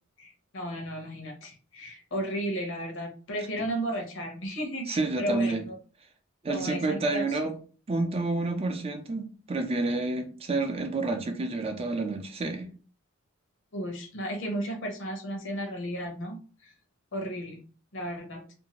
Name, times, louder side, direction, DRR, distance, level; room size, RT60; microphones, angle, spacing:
voice 1, 0.2-5.7 6.5-7.4 13.7-16.7 17.1-17.6 17.9-18.4, equal, 65° left, 0.8 m, -34 dB
voice 2, 4.9-5.6 6.4-7.6 7.9-12.7, right 3 dB, 30° right, 0.4 m, -29 dB
2.6 x 2.3 x 2.9 m
head